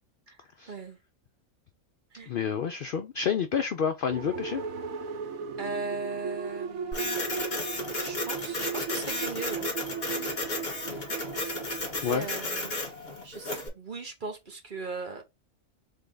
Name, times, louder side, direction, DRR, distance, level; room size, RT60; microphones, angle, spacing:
voice 1, 0.3-1.0 2.1-2.3 5.6-7.4 7.8-9.7 10.1-10.4 11.8-12.7 13.2-15.2, right 3 dB, 40° right, 1.1 m, -38 dB
voice 2, 2.3-4.6 12.0-12.3, left 7 dB, 65° left, 0.5 m, -29 dB
sound 1, 4.1-12.8, right 6 dB, 90° right, 1.2 m, -37 dB
Printer, 6.9-13.7, left 2 dB, 45° left, 1.8 m, -33 dB
3.7 x 3.4 x 3.8 m
omnidirectional pair, 1.4 m